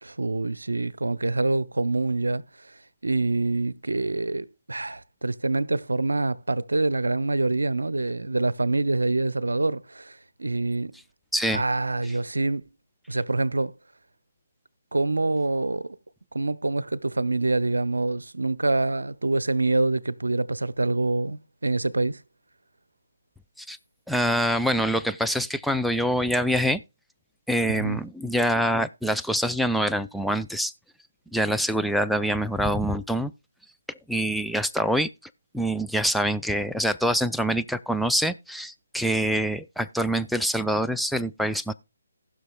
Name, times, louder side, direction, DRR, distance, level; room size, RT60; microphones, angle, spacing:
voice 1, 0.0-2.4 3.0-10.9 11.5-12.6 13.1-13.7 14.9-15.9 16.3-22.2 27.6-28.0, right 2 dB, 85° right, 0.6 m, -26 dB
voice 2, 11.3-11.6 23.6-23.8 24.1-26.8 27.5-30.7 31.3-33.3 34.1-35.1 35.5-41.7, equal, ahead, 0.4 m, -25 dB
19.0 x 6.3 x 2.3 m
figure-of-eight pair, 150°, 0 cm